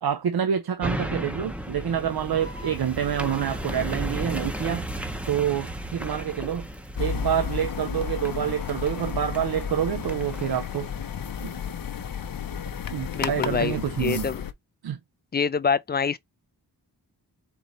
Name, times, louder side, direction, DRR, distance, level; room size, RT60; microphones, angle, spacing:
voice 1, 0.0-4.9 5.3-6.7 7.0-10.9 11.4-11.5 12.9-14.3 14.8-15.0, right 9 dB, 65° right, 0.6 m, -27 dB
sound 1, 0.8-12.3 12.7-12.8, equal, 5° right, 0.7 m, -35 dB
sound 2, 2.3-7.5, right 5 dB, 45° right, 1.5 m, -46 dB
sound 3, 7.0-14.5, left 7 dB, 55° left, 0.7 m, -32 dB
voice 2, 13.1-14.4 15.3-16.2, left 6 dB, 25° left, 0.3 m, -26 dB
4.3 x 3.0 x 3.9 m
wide cardioid pair, 90°, 42 cm